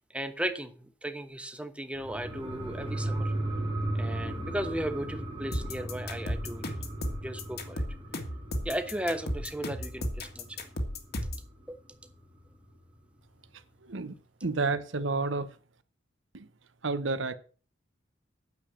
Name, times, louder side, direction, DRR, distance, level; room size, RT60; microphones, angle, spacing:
voice 1, 0.1-3.3 3.9-6.8 7.2-7.8 8.6-10.7 11.7-11.8, right 1 dB, 5° right, 1.1 m, -36 dB
sound 1, 2.0-11.1 11.4-11.5, right 1 dB, 25° right, 1.8 m, -36 dB
sound 2, 5.5-11.5, left 1 dB, 55° left, 1.9 m, -34 dB
voice 2, 13.8-14.1 14.4-15.6 16.3-16.5 16.8-17.4, right 3 dB, 75° right, 1.0 m, -30 dB
9.6 x 7.2 x 7.3 m
head